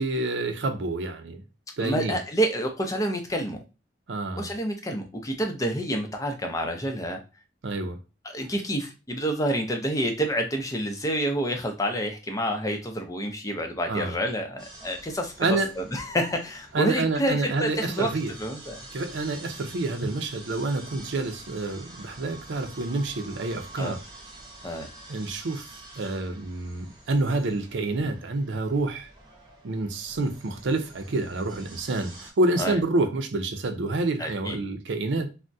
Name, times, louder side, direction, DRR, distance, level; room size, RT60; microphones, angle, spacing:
voice 1, 0.0-1.4 1.8-2.2 4.1-4.5 7.6-8.0 13.9-14.1 15.4-15.7 16.7-18.3 18.9-24.0 25.1-25.7 26.0-29.1 29.6-35.3, right 2 dB, 85° right, 0.5 m, -28 dB
voice 2, 1.8-3.6 4.4-7.2 8.2-15.3 15.8-18.1 18.4-18.8 23.8-23.9 24.6-24.9 32.6-32.8 34.2-34.6, equal, 20° left, 0.5 m, -28 dB
sound 1, 14.6-32.3, right 2 dB, 25° right, 0.9 m, -47 dB
3.4 x 2.1 x 2.6 m
head